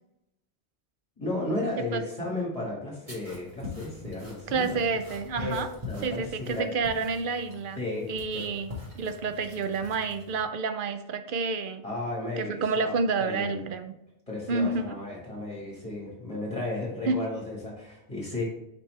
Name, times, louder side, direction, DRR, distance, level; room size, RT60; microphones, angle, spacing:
voice 1, 1.2-4.8 5.4-5.6 5.9-6.7 7.8-8.4 11.8-13.6 14.3-18.4, left 2 dB, 30° left, -5 dB, 1.8 m, -34 dB
sound 1, 3.1-10.4, left 3 dB, 30° right, 2.0 m, -43 dB
voice 2, 4.5-5.7 6.0-7.8 8.1-11.8 12.4-13.9 14.5-14.9 17.1-17.2, right 4 dB, 60° right, 9 dB, 0.7 m, -29 dB
5.5 x 5.3 x 3.2 m, 0.86 s
omnidirectional pair, 1.1 m